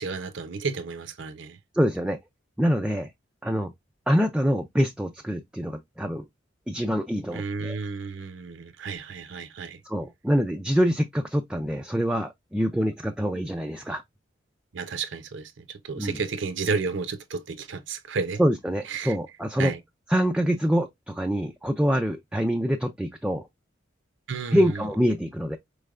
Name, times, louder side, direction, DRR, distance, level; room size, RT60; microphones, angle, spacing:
voice 1, 0.0-1.6 7.3-9.8 14.7-18.4 18.9-19.2 19.6-19.8 24.3-24.6, right 5 dB, 75° right, 0.6 m, -32 dB
voice 2, 1.7-2.2 2.6-3.1 3.4-3.7 4.1-6.2 6.7-7.8 9.8-14.0 16.0-16.2 18.4-19.7 20.1-23.4 24.5-25.6, equal, 5° right, 0.3 m, -25 dB
4.4 x 3.3 x 2.3 m
head